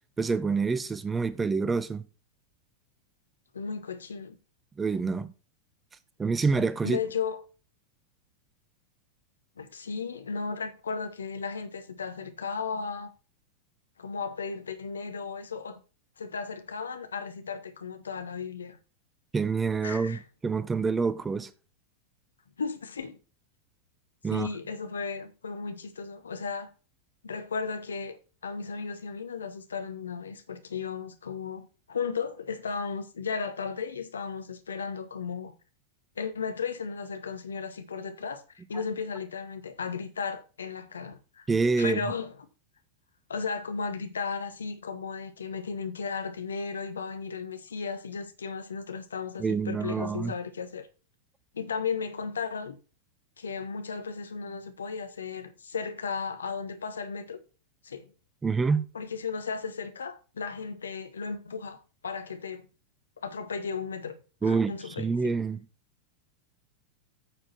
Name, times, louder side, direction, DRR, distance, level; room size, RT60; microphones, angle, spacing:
voice 1, 0.2-2.0 4.8-5.3 6.2-7.0 19.3-21.5 24.2-24.5 41.5-42.1 49.4-50.3 58.4-58.9 64.4-65.6, right 4 dB, 15° right, 0.7 m, -27 dB
voice 2, 3.5-4.4 6.8-7.4 9.6-13.1 14.0-15.8 16.2-18.8 19.8-20.2 22.6-23.2 24.3-26.7 27.2-35.5 36.2-38.4 38.7-41.4 41.8-42.3 43.3-50.9 51.5-52.8 53.4-57.4 57.8-58.1 58.9-61.8 62.0-62.6 63.2-65.3, left 5 dB, 70° left, 1.3 m, -35 dB
9.2 x 6.7 x 4.3 m
figure-of-eight pair, 90°, 0 cm